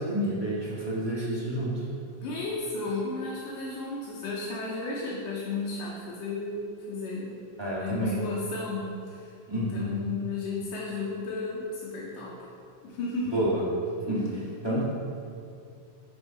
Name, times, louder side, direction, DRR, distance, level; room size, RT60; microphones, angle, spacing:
voice 1, 0.0-1.9 7.6-8.2 9.5-10.0 13.3-13.6 14.0-14.8, right 1 dB, 20° right, -8 dB, 0.6 m, -29 dB
voice 2, 2.2-7.3 7.8-9.3 9.6-12.3 12.8-13.4 14.0-14.3, left 3 dB, 90° left, -6 dB, 2.8 m, -33 dB
8.6 x 4.9 x 5.7 m, 2.4 s
omnidirectional pair, 3.7 m